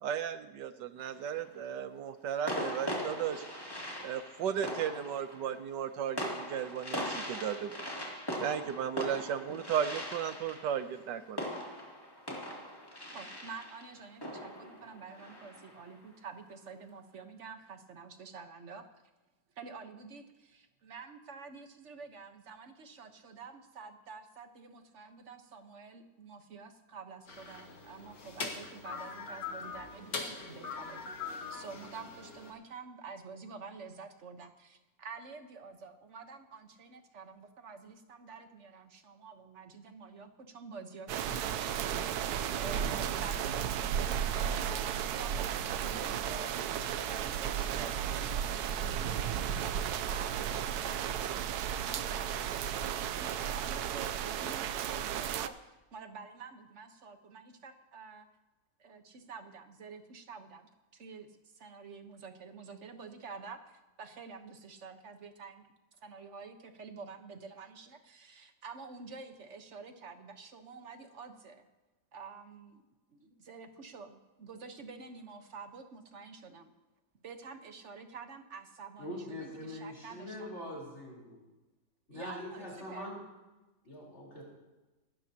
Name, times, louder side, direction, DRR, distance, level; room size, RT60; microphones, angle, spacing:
voice 1, 0.0-3.4 4.0-7.9 8.4-11.4, right 8 dB, 85° right, 11 dB, 1.4 m, -35 dB
sound 1, 1.0-1.6 2.5-15.9, equal, 15° left, 2.4 m, -40 dB
voice 2, 13.1-18.8 19.6-43.6 44.3-49.4 49.9-51.5 51.8-52.6 53.1-58.3 58.8-65.7 66.0-71.7 72.1-72.8 73.1-76.7 77.2-80.5 82.1-83.1, right 5 dB, 45° right, 7 dB, 1.3 m, -48 dB
sound 2, 27.3-32.5, left 4 dB, 80° left, 2.5 m, -42 dB
sound 3, 41.1-55.5, right 9 dB, 70° right, 1.1 m, -34 dB
voice 3, 79.0-81.4 82.1-83.2 83.8-84.4, left 1 dB, 40° left, -4 dB, 4.5 m, -43 dB
26.0 x 12.5 x 2.9 m, 1.1 s
omnidirectional pair, 1.8 m